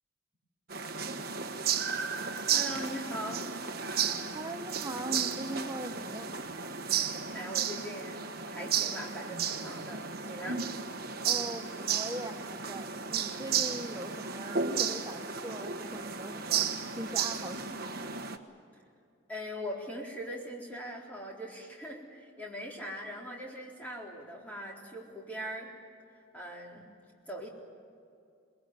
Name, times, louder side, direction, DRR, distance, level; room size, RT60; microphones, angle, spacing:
sound 1, 0.7-18.4, right 7 dB, 45° right, 1.4 m, -33 dB
voice 1, 2.5-3.5 7.1-8.2 8.5-10.7 19.3-25.7 26.3-26.9 27.3-27.5, equal, 5° left, -2 dB, 4.0 m, -41 dB
voice 2, 4.3-6.3 11.2-18.1, right 1 dB, 15° right, 5 dB, 0.8 m, -41 dB
23.0 x 21.5 x 9.4 m, 2.5 s
head